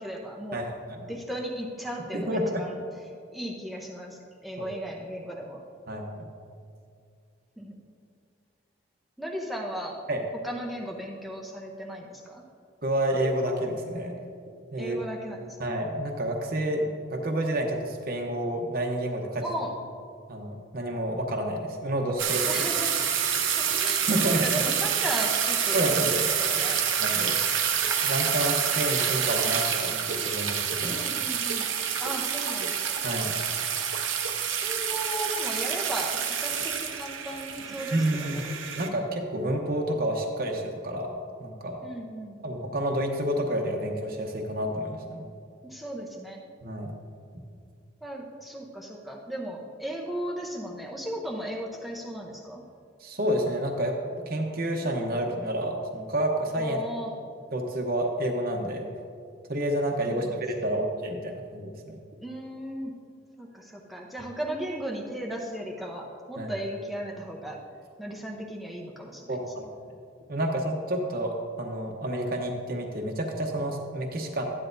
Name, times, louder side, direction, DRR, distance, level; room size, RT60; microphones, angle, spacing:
voice 1, 0.0-0.7 1.1-2.8 3.3-5.6 7.6-7.8 9.2-10.0 10.4-12.4 14.8-15.7 19.4-19.8 22.5-23.0 23.6-26.8 30.8-31.7 32.0-33.1 34.6-38.4 41.8-42.4 45.6-46.4 48.0-52.7 56.6-57.1 60.1-60.4 60.7-60.8 62.2-62.9 63.4-67.6 68.0-69.4, equal, ahead, -2 dB, 0.7 m, -36 dB
voice 2, 0.5-1.1 2.1-2.6 5.9-6.2 10.1-10.2 12.8-14.2 14.7-15.0 15.6-19.4 20.3-22.6 23.5-23.7 24.1-24.4 25.7-26.2 27.0-27.4 28.0-31.0 33.0-33.3 37.9-38.4 38.8-41.8 42.4-45.2 46.6-46.9 53.0-56.8 57.5-58.9 59.5-62.0 66.4-66.5 69.3-69.7 70.3-74.4, right 1 dB, 50° right, 1 dB, 0.9 m, -29 dB
sound 1, 22.2-38.9, right 8 dB, 85° right, 0.8 m, -27 dB
13.0 x 10.0 x 2.6 m, 2.3 s
head